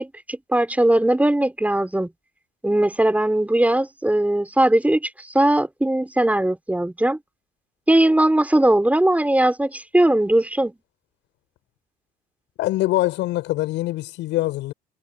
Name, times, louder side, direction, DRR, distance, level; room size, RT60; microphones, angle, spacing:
voice 1, 0.0-2.1 2.6-5.1 5.3-7.2 7.9-10.7, right 1 dB, 10° right, 5.0 m, -19 dB
voice 2, 12.6-14.7, left 17 dB, 75° left, 7.7 m, -23 dB
supercardioid pair, 80°, 19 cm